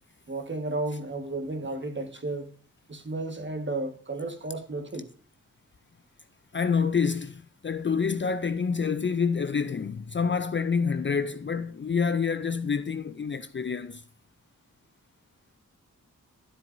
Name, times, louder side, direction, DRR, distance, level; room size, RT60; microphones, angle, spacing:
voice 1, 0.3-2.5 2.9-5.1, right 2 dB, 35° right, 1.5 m, -33 dB
voice 2, 6.5-14.0, left 5 dB, 35° left, 0.4 m, -27 dB
12.5 x 7.7 x 2.6 m
wide cardioid pair, 90°, 32 cm